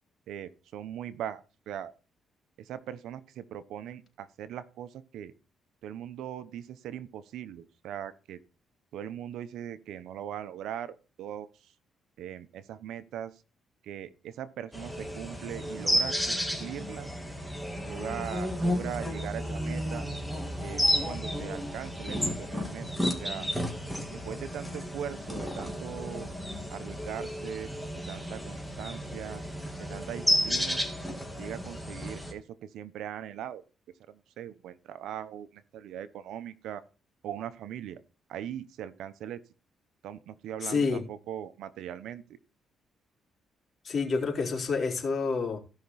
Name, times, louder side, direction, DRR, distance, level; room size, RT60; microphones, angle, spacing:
voice 1, 0.3-1.9 2.6-5.3 5.8-8.4 8.9-11.7 12.2-13.4 13.8-17.1 17.9-20.1 20.6-22.9 23.2-23.5 24.1-26.3 26.7-27.7 28.1-29.4 29.8-30.8 31.4-33.6 34.1-36.8 37.2-38.0 38.3-39.4 40.0-42.2, right 10 dB, 80° right, 1.0 m, -40 dB
sound 1, 14.7-32.3, equal, ahead, 3.1 m, -32 dB
voice 2, 40.6-41.0 43.8-45.6, left 4 dB, 45° left, 4.0 m, -28 dB
16.5 x 5.9 x 4.2 m
cardioid pair, 90°, 0 cm